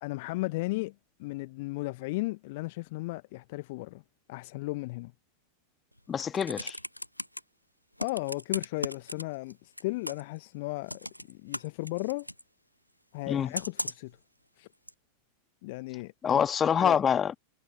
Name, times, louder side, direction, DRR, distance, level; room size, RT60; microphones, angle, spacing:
voice 1, 0.0-4.0 4.3-5.1 8.0-12.3 13.1-14.1 14.6-14.7 15.6-16.4 16.8-17.0, left 22 dB, 50° left, 0.9 m, -35 dB
Computer keyboard, 6.0-7.4 8.0-9.5 9.8-10.4 10.9-12.4 13.5-14.1 14.9-15.0, equal, 90° left, 0.8 m, -37 dB
voice 2, 6.1-6.8 13.3-13.5 16.2-17.3, left 8 dB, 20° left, 1.8 m, -26 dB
figure-of-eight pair, 90°, 0 cm